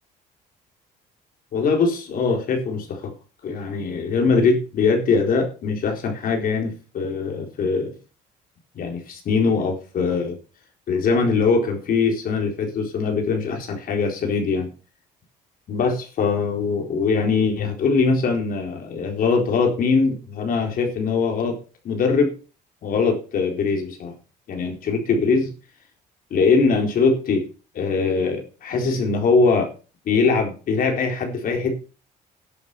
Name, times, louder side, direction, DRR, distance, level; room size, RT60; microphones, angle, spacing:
voice 1, 1.5-3.1 3.4-8.0 8.7-10.4 10.9-14.7 15.7-21.6 21.8-22.4 22.8-24.1 24.5-25.5 26.3-27.5 27.7-29.7 30.1-31.8, left 4 dB, 55° left, 3 dB, 4.1 m, -22 dB
11.0 x 7.8 x 6.8 m, 0.36 s
cardioid pair, 110°, 17 cm